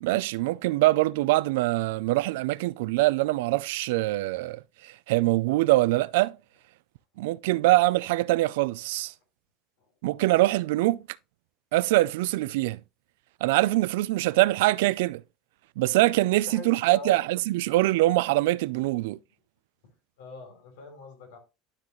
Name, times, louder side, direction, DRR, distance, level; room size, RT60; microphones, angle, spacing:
voice 1, 0.0-4.6 5.1-6.4 7.2-9.1 10.0-11.0 11.7-12.8 13.4-15.2 15.8-19.2, right 18 dB, 85° right, 0.3 m, -23 dB
voice 2, 16.2-17.2 18.7-18.9 20.2-21.4, left 3 dB, 90° left, 3.1 m, -42 dB
12.0 x 4.0 x 3.0 m
supercardioid pair, 135°, 0 cm